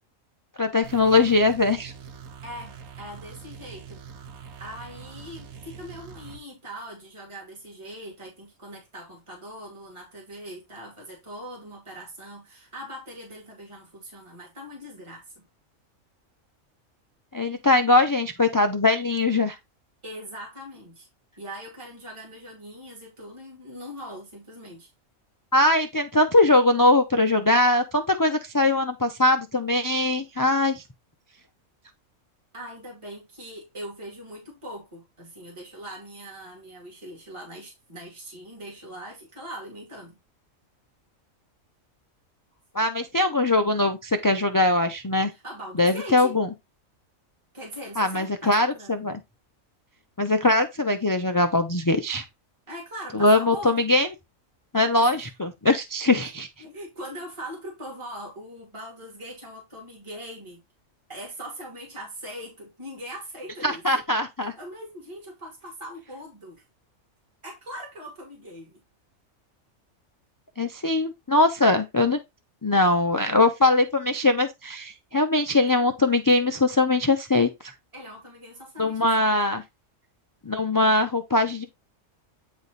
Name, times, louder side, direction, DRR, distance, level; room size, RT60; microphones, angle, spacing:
voice 1, 0.6-1.9 17.3-19.6 25.5-30.8 42.7-45.3 45.8-46.5 48.0-49.2 50.2-52.2 53.1-54.1 54.7-56.5 63.6-64.5 70.6-72.2 72.6-77.7 78.8-79.6 80.5-81.7, left 2 dB, 25° left, 0.4 m, -21 dB
sound 1, 0.8-6.4, right 6 dB, 90° right, 1.4 m, -43 dB
voice 2, 2.4-4.0 4.6-15.5 20.0-21.1 21.4-24.9 32.5-40.2 45.3-46.4 47.5-49.1 52.7-53.8 54.9-55.1 56.6-60.6 61.1-63.8 64.6-66.6 67.4-68.8 77.9-79.3, equal, 20° right, 2.6 m, -41 dB
9.3 x 3.3 x 4.1 m
omnidirectional pair, 1.4 m